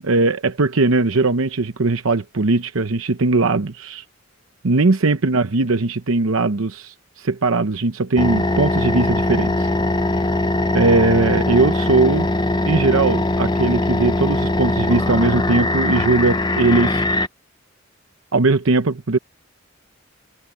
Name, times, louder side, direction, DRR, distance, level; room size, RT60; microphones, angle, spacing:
voice 1, 0.0-4.0 4.6-9.7 10.7-12.3 12.6-17.0 18.3-19.2, right 3 dB, 75° right, 0.9 m, -19 dB
sound 1, 8.2-17.3, left 2 dB, 20° left, 0.7 m, -21 dB
head